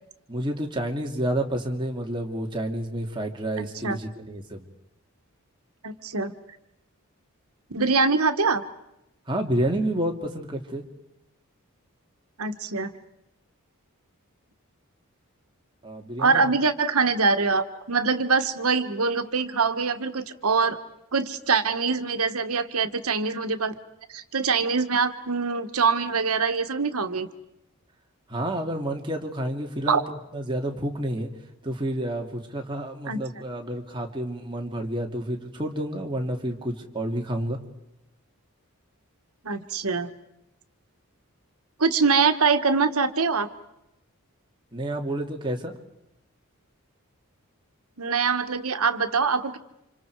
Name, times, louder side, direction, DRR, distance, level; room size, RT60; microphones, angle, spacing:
voice 1, 0.3-4.7 9.3-10.8 15.8-16.5 28.3-30.0 30.3-31.3 31.6-37.6 44.7-45.7, right 1 dB, 20° right, 2 dB, 2.4 m, -29 dB
voice 2, 3.6-4.0 5.8-6.3 7.7-8.6 12.4-12.9 16.2-20.8 21.1-23.7 24.1-27.3 29.9-30.0 33.1-33.2 39.4-40.1 41.8-43.5 48.0-49.6, right 4 dB, 80° right, 9 dB, 1.5 m, -24 dB
29.5 x 27.0 x 4.8 m, 0.89 s
head